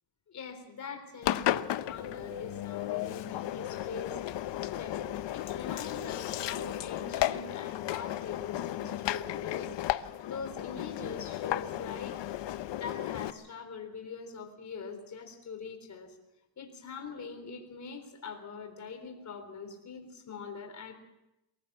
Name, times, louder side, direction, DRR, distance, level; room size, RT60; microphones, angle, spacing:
voice 1, 0.3-4.2 4.6-12.2 12.7-16.2 16.6-20.9, left 5 dB, 40° left, 4 dB, 3.7 m, -43 dB
Engine, 1.2-13.3, left 13 dB, 75° left, 0.9 m, -34 dB
23.0 x 15.5 x 7.3 m, 0.93 s
cardioid pair, 175°, 44 cm